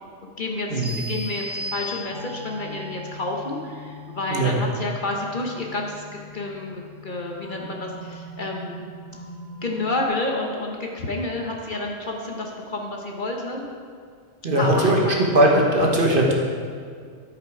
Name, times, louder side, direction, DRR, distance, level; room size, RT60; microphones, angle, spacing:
voice 1, 0.2-6.0 6.3-8.9 9.6-13.7 14.6-15.1, left 2 dB, 45° left, 0 dB, 1.0 m, -29 dB
sound 1, 0.8-2.5, equal, 15° right, 0.9 m, -34 dB
sound 2, 2.1-10.0, left 1 dB, 25° left, 1.0 m, -41 dB
voice 2, 14.4-15.0 15.3-16.3, right 1 dB, 50° right, -1 dB, 1.3 m, -19 dB
12.0 x 5.1 x 4.8 m, 2.1 s
omnidirectional pair, 1.2 m